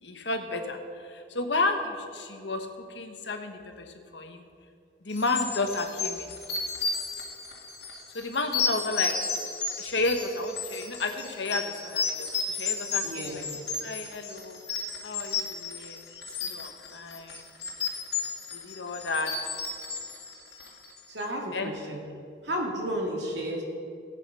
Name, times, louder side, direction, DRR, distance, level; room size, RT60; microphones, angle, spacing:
voice 1, 0.0-4.4 5.0-6.4 8.1-9.2 9.8-14.6 15.0-16.2 16.5-17.5 18.5-19.3 21.5-21.7, left 2 dB, 85° left, 6 dB, 1.3 m, -32 dB
sound 1, 5.1-21.0, left 5 dB, 70° left, 2.0 m, -33 dB
voice 2, 13.0-13.6 14.7-14.8 21.1-22.0 22.4-23.6, equal, 80° right, 0 dB, 2.2 m, -33 dB
16.0 x 8.4 x 5.5 m, 2.4 s
head